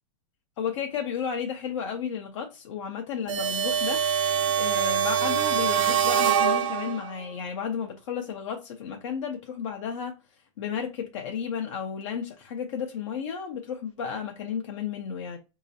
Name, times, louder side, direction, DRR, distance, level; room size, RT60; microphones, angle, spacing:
voice 1, 0.6-4.0 4.3-10.1 10.6-15.4, left 7 dB, 65° left, 0.9 m, -33 dB
sound 1, 3.3-7.2, right 8 dB, 70° right, 0.9 m, -24 dB
4.9 x 3.0 x 2.7 m
supercardioid pair, 145°, 17 cm